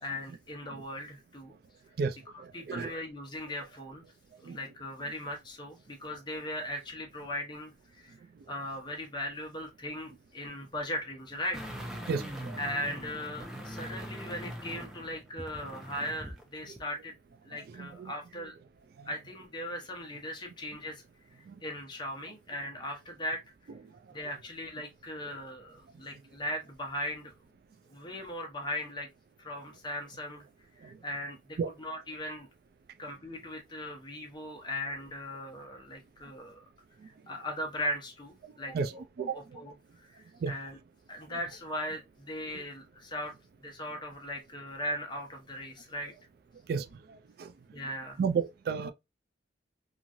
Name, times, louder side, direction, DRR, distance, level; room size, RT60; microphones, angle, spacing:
voice 1, 0.0-1.5 2.3-4.0 4.4-8.1 8.5-11.6 12.6-17.1 17.4-18.6 19.1-21.0 21.3-23.4 24.1-27.3 27.9-29.1 29.4-30.4 30.8-32.5 33.0-36.6 37.0-38.8 39.3-40.8 41.1-43.3 43.6-46.1 47.7-48.2, left 1 dB, 25° left, 0.8 m, -38 dB
sound 1, 11.5-16.4 16.8-16.9, equal, 5° right, 0.5 m, -42 dB
voice 2, 12.1-12.6 17.7-18.1 21.5-21.6 31.6-31.7 38.7-38.9 39.2-39.4 40.4-40.5 46.7-46.9 47.4-47.5 48.2-48.9, right 5 dB, 60° right, 0.3 m, -31 dB
3.0 x 2.4 x 2.5 m
head